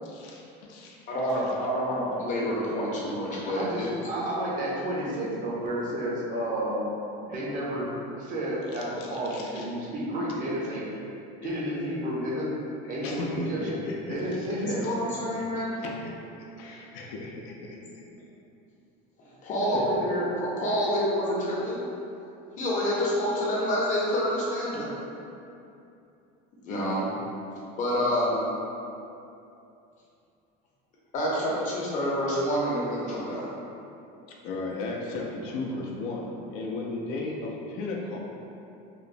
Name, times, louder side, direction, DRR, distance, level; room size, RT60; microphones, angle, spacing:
voice 1, 0.0-1.0 1.2-1.4 3.5-3.6 4.4-4.5 6.3-6.6 7.3-7.8 8.3-10.8 11.4-11.6 12.2-12.3 12.8-14.6 15.3-15.4 15.8-16.1 16.6-18.0 19.7-19.8 20.6-20.8 34.3-38.2, left 2 dB, 75° left, -1 dB, 0.4 m, -37 dB
voice 2, 1.1-3.9 14.6-15.8 19.2-21.8 22.5-24.9 26.6-27.0 27.8-28.5 31.1-33.5, equal, 35° left, -6 dB, 0.6 m, -28 dB
voice 3, 3.6-6.8 7.2-7.9 8.2-10.8 11.4-12.5 12.9-13.8 14.1-14.8, right 1 dB, 40° right, -4 dB, 0.5 m, -31 dB
3.0 x 2.0 x 2.5 m, 2.7 s
cardioid pair, 145°, 21 cm